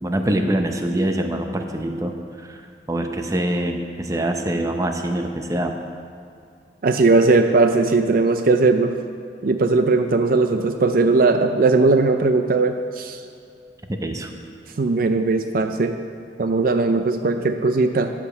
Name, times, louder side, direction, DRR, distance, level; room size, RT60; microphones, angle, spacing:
voice 1, 0.0-2.1 2.5-2.6 2.9-5.8 13.9-14.3, right 1 dB, 20° right, 4 dB, 0.7 m, -24 dB
voice 2, 6.8-9.0 9.4-13.2 14.8-16.0 16.4-18.1, right 3 dB, 55° right, 7 dB, 0.5 m, -18 dB
13.5 x 5.1 x 6.7 m, 2.3 s
head